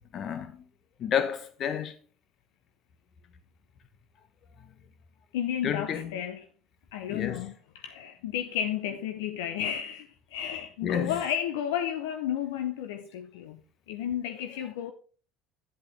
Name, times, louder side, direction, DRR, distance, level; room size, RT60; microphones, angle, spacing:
voice 1, 0.1-0.6 1.0-1.9 5.6-6.1 7.1-7.4 10.8-11.1, left 8 dB, 50° left, 1.4 m, -30 dB
voice 2, 5.3-6.5 6.9-13.6 13.9-14.9, left 10 dB, 75° left, 0.7 m, -32 dB
9.9 x 8.3 x 3.4 m
hypercardioid pair, 65°, 0 cm